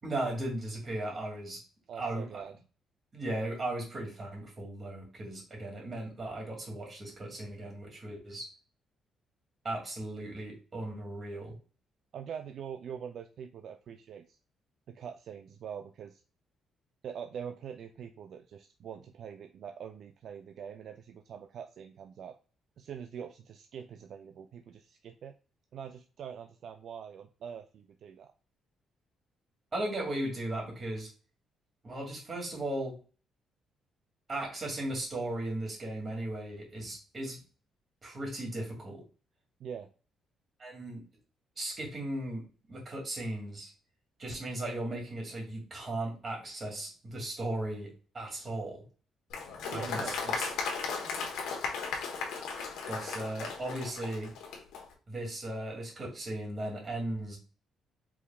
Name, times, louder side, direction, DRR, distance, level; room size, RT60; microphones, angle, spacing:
voice 1, 0.0-1.6 1.9-2.4 3.1-8.5 9.6-11.5 29.7-31.1 31.8-33.0 34.3-37.4 38.0-39.1 40.6-41.0 41.6-43.7 44.2-48.8 49.7-50.5 52.9-54.3 55.1-57.4, right 1 dB, 35° right, -1 dB, 2.2 m, -37 dB
voice 2, 1.9-2.5 12.1-14.4 14.9-16.2 17.0-22.3 22.8-25.3 25.7-28.3 39.6-39.9 49.7-50.6, right 8 dB, 65° right, 7 dB, 0.3 m, -44 dB
Applause, 49.3-54.8, left 5 dB, 90° left, 1.0 m, -36 dB
4.8 x 3.4 x 2.3 m, 0.37 s
cardioid pair, 90°, 0 cm